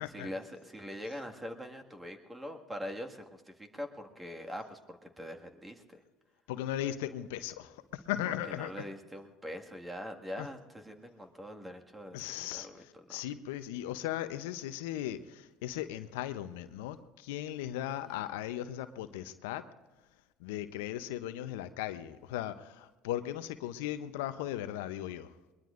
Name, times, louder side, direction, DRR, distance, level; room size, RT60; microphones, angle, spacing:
voice 1, 0.1-6.0 8.3-13.2 18.1-18.2, equal, 15° right, 3 dB, 1.9 m, -43 dB
voice 2, 6.5-8.8 10.4-10.5 12.1-19.6 20.4-25.3, left 12 dB, 80° left, 11 dB, 0.7 m, -37 dB
22.0 x 21.5 x 2.6 m, 1.2 s
hypercardioid pair, 70°, 0 cm